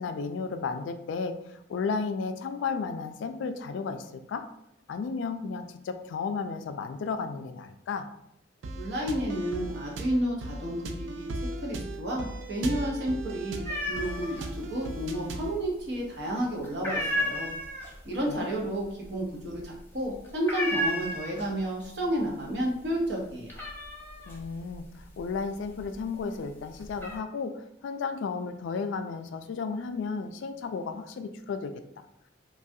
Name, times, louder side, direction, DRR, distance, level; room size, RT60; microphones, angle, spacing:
voice 1, 0.0-4.4 4.9-8.1 18.3-18.5 24.3-31.8, left 5 dB, 80° left, 9 dB, 0.3 m, -33 dB
sound 1, 8.6-15.6, right 2 dB, 90° right, 0.4 m, -37 dB
voice 2, 8.8-13.6 13.9-17.5 18.0-23.6, right 1 dB, 65° right, -2 dB, 0.8 m, -31 dB
sound 2, 13.7-14.5 14.8-15.6 15.9-16.3 16.6-21.7 22.0-22.6 22.9-26.1 26.6-27.2, left 1 dB, 10° left, 0.6 m, -33 dB
3.2 x 2.3 x 2.6 m, 0.80 s
head